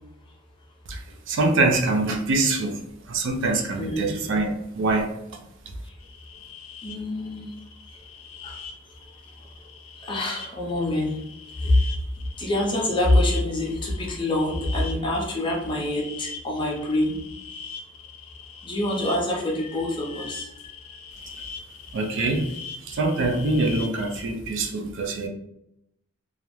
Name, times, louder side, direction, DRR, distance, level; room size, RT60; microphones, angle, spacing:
voice 1, 1.3-2.8 3.1-5.1 21.9-22.5 22.9-25.3, right 2 dB, 60° right, 4 dB, 0.4 m, -24 dB
voice 2, 3.8-4.3 6.8-7.5 8.4-8.5 10.1-11.1 11.6-11.8 12.4-17.2 18.6-20.5, left 1 dB, 25° left, -2 dB, 0.6 m, -25 dB
sound 1, 6.0-24.3, left 5 dB, 75° left, 0.4 m, -42 dB
2.4 x 2.0 x 2.9 m, 0.80 s
head